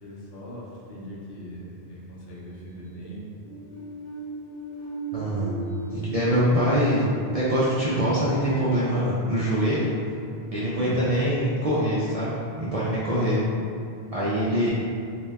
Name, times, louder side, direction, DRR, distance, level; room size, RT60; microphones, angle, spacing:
voice 1, 0.0-3.4 5.1-5.9 10.7-11.0 14.5-14.7, equal, 70° left, -5 dB, 0.8 m, -41 dB
sound 1, 3.4-9.1, right 3 dB, 40° left, 0.7 m, -37 dB
voice 2, 5.1-5.5 5.9-7.0 7.3-9.9 10.5-13.4 14.1-14.7, equal, 50° right, -9 dB, 0.4 m, -24 dB
2.8 x 2.1 x 3.3 m, 2.4 s
omnidirectional pair, 1.1 m